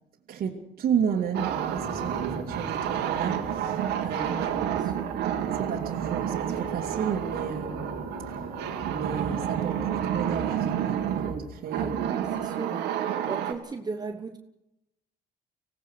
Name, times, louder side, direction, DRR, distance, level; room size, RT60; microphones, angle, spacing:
voice 1, 0.3-4.5 5.5-8.4 8.8-11.9, right 7 dB, 55° right, -3 dB, 2.5 m, -32 dB
sound 1, 1.3-13.5, right 9 dB, 85° right, 2.3 m, -30 dB
sound 2, 1.8-10.8, left 3 dB, 65° left, 3.1 m, -44 dB
voice 2, 4.3-5.1 11.7-12.9 13.2-14.4, right 4 dB, 25° right, 6 dB, 1.1 m, -37 dB
25.0 x 17.5 x 6.4 m, 0.90 s
cardioid pair, 110°, 17 cm